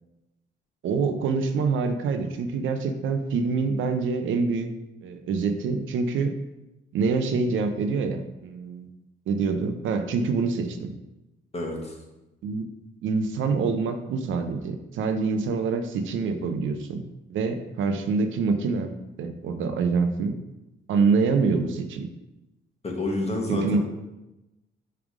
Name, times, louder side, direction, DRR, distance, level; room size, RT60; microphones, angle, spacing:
voice 1, 0.8-4.7 5.0-6.3 6.9-8.9 9.3-10.9 12.4-12.7 13.0-17.0 17.3-18.9 19.2-20.3 20.9-22.1 23.5-23.8, right 4 dB, 75° right, 7 dB, 0.7 m, -25 dB
voice 2, 11.5-12.0 22.8-23.8, left 2 dB, 30° left, 0 dB, 1.6 m, -28 dB
7.3 x 3.4 x 4.9 m, 0.99 s
cardioid pair, 90°, 20 cm